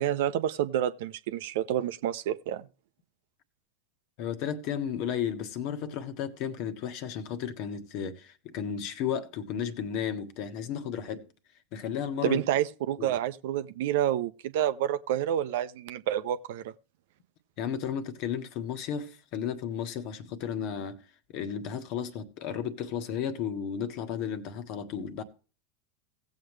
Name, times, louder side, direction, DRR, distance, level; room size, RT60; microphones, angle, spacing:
voice 1, 0.0-2.6 12.2-16.7, right 11 dB, 60° right, 0.7 m, -29 dB
voice 2, 4.2-11.2 11.7-12.4 13.0-13.1 17.6-21.0 21.3-25.2, left 8 dB, 50° left, 1.4 m, -33 dB
17.0 x 7.6 x 3.2 m
figure-of-eight pair, 85°, 0 cm